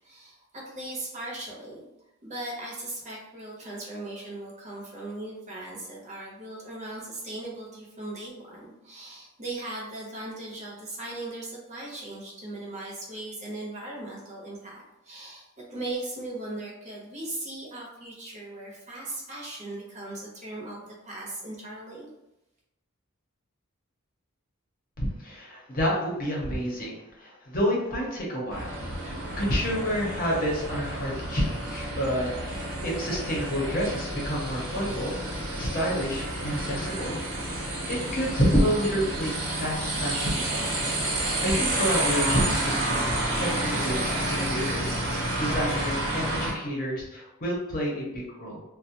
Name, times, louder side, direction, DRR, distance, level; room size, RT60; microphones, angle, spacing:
voice 1, 0.0-1.9 2.2-22.1, right 2 dB, 35° right, -4 dB, 0.7 m, -38 dB
voice 2, 25.0-28.7 29.3-35.1 35.6-37.2 37.9-40.8 41.1-48.6, equal, 45° left, -3 dB, 0.7 m, -29 dB
sound 1, 28.5-46.5, right 1 dB, 90° right, 0.8 m, -30 dB
2.4 x 2.1 x 2.7 m, 0.91 s
head